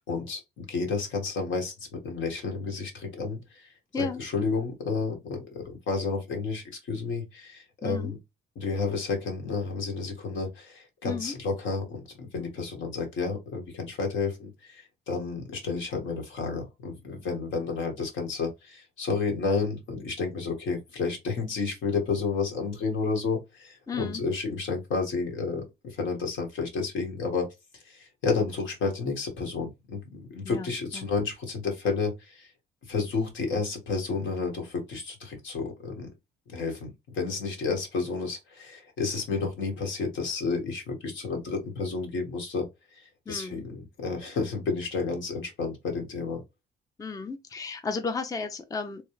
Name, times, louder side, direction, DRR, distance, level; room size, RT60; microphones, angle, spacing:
voice 1, 0.1-3.7 4.0-8.2 8.5-27.5 27.9-32.5 32.9-36.1 36.5-42.6 43.3-46.4, left 4 dB, 75° left, 1.5 m, -31 dB
voice 2, 7.8-8.1 11.0-11.3 23.9-24.2 30.4-31.1 43.3-43.6 47.0-49.0, left 4 dB, 15° left, 0.5 m, -34 dB
3.1 x 2.3 x 3.0 m
cardioid pair, 90°, 20 cm